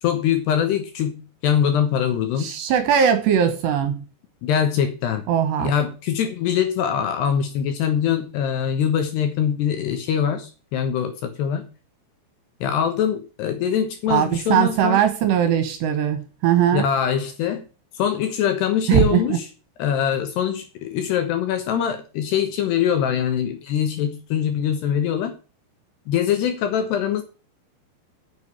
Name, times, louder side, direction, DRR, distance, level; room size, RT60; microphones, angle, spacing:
voice 1, 0.0-1.2 1.4-2.5 4.4-5.3 5.6-11.7 12.6-15.0 16.7-17.7 17.9-19.5 19.8-25.4 26.1-27.2, left 8 dB, 70° left, 2.8 m, -23 dB
voice 2, 2.4-4.0 5.3-5.7 14.1-16.9 18.9-19.4, right 9 dB, 70° right, 2.8 m, -20 dB
8.1 x 7.2 x 8.4 m
omnidirectional pair, 5.9 m